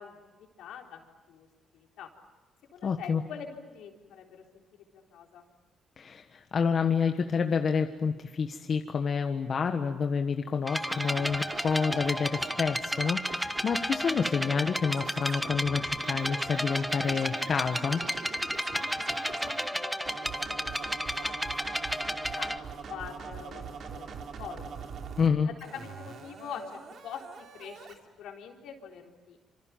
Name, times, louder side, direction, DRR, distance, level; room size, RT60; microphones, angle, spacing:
voice 1, 0.0-1.5 1.7-2.1 2.7-5.5 18.5-20.9 21.2-21.7 22.1-24.1 24.4-24.9 25.4-29.4, left 7 dB, 80° left, 1 dB, 4.1 m, -45 dB
voice 2, 2.8-3.2 6.0-18.0 25.2-25.5, left 6 dB, 50° left, 5 dB, 1.4 m, -28 dB
sound 1, 10.7-22.6, equal, ahead, 1.1 m, -33 dB
Scratching (performance technique), 10.9-19.7 20.1-25.3 25.6-27.9, right 6 dB, 60° right, 3.0 m, -43 dB
27.5 x 27.0 x 7.5 m, 1.2 s
cardioid pair, 90°, 0 cm